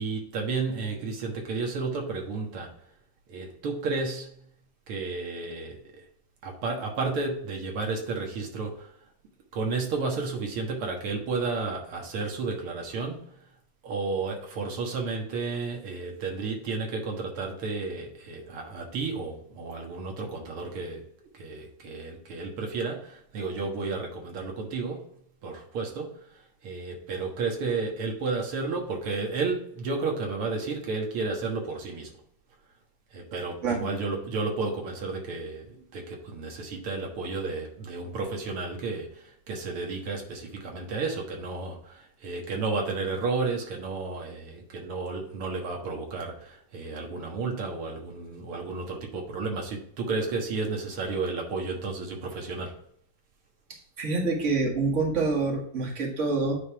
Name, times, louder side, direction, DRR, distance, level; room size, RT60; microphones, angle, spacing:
voice 1, 0.0-2.7 3.3-4.4 4.9-6.0 6.4-8.9 9.5-13.3 13.8-21.0 21.3-25.1 25.4-32.1 33.1-52.8, right 4 dB, 85° right, 1 dB, 2.3 m, -32 dB
voice 2, 54.0-56.6, right 3 dB, 35° right, 0 dB, 2.0 m, -26 dB
9.4 x 3.6 x 4.6 m, 0.65 s
omnidirectional pair, 2.3 m